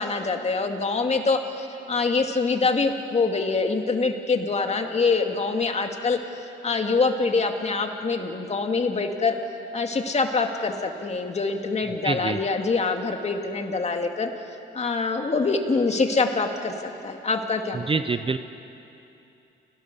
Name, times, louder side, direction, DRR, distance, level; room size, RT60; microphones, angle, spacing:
voice 1, 0.0-6.2 6.6-9.4 9.7-14.3 14.7-16.7 17.0-17.9, left 4 dB, 35° left, 4 dB, 2.3 m, -25 dB
voice 2, 12.0-12.4 17.7-18.4, right 4 dB, 25° right, 11 dB, 0.8 m, -25 dB
30.0 x 17.5 x 6.9 m, 2.8 s
cardioid pair, 90°, 20 cm